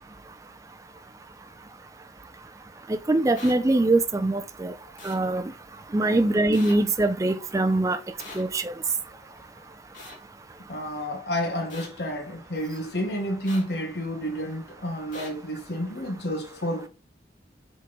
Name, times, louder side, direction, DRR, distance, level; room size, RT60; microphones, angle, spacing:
voice 1, 2.9-4.7 5.0-5.5 5.9-8.0 8.3-8.7, right 2 dB, 20° right, 0.4 m, -23 dB
sound 1, 3.4-3.5 5.0-5.2 6.5-6.7 8.2-8.4 9.9-10.2 11.7-11.9 13.5-13.6 15.1-15.3, left 3 dB, 45° left, 2.5 m, -40 dB
voice 2, 10.7-16.9, equal, 70° left, 1.3 m, -30 dB
7.4 x 3.7 x 3.9 m
head